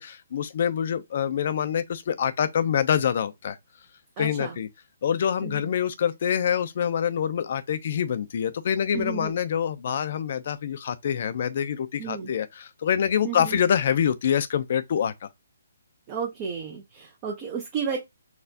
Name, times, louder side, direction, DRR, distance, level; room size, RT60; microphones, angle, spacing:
voice 1, 0.0-3.6 4.2-4.7 5.0-15.1, left 8 dB, 50° left, 0.5 m, -26 dB
voice 2, 4.2-4.6 5.4-5.6 8.9-9.4 12.0-12.3 13.2-13.6 16.1-18.0, right 6 dB, 25° right, 0.7 m, -32 dB
4.2 x 2.3 x 2.7 m
hypercardioid pair, 155°, 0 cm